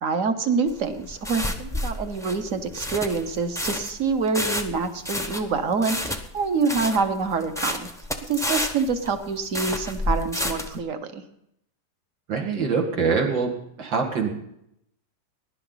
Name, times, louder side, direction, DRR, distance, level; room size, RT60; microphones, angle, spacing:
voice 1, 0.0-7.9 8.3-11.2, right 4 dB, 50° right, 8 dB, 1.3 m, -26 dB
sound 1, 0.7-10.8, left 1 dB, 5° left, 0.4 m, -30 dB
voice 2, 12.3-13.5 13.8-14.3, right 5 dB, 90° right, 2 dB, 2.7 m, -24 dB
21.5 x 11.0 x 4.0 m, 0.78 s
omnidirectional pair, 2.0 m